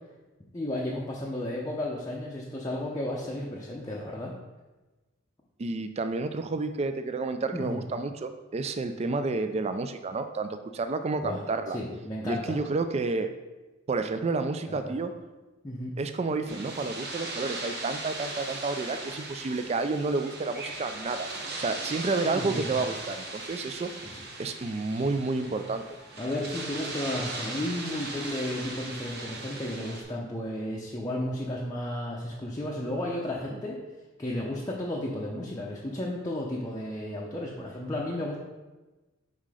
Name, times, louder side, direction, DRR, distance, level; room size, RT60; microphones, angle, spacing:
voice 1, 0.5-4.3 7.5-7.8 11.2-12.6 14.7-15.0 15.6-16.0 22.3-22.9 24.1-24.2 25.0-25.1 26.2-33.8 34.2-38.4, left 1 dB, 15° left, -4 dB, 0.6 m, -33 dB
voice 2, 5.6-11.8 12.2-13.3 13.9-15.1 16.0-21.3 21.6-23.9 24.4-25.8 33.5-33.6, right 3 dB, 30° right, 9 dB, 0.3 m, -30 dB
sound 1, 16.5-30.0, right 2 dB, 55° right, 1.0 m, -38 dB
5.7 x 3.7 x 4.8 m, 1.2 s
head